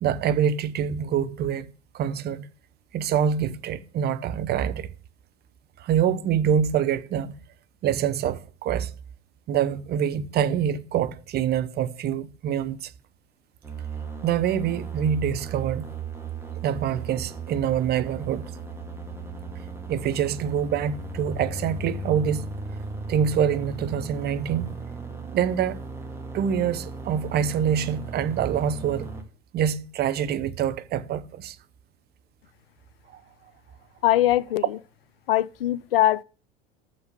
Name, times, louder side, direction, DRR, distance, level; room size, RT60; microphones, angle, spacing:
voice 1, 0.0-2.5 2.9-4.9 5.8-7.3 7.8-8.9 9.5-12.9 14.2-15.9 16.6-18.5 19.9-22.5 23.1-24.7 25.3-25.8 26.3-29.1 29.5-31.6 33.1-33.2, right 8 dB, 30° right, 0.9 m, -25 dB
sound 1, 13.6-29.2, right 4 dB, 10° right, 1.9 m, -36 dB
voice 2, 34.0-34.8 35.3-36.2, left 14 dB, 65° left, 0.5 m, -22 dB
7.0 x 6.9 x 8.0 m
figure-of-eight pair, 75°, 30 cm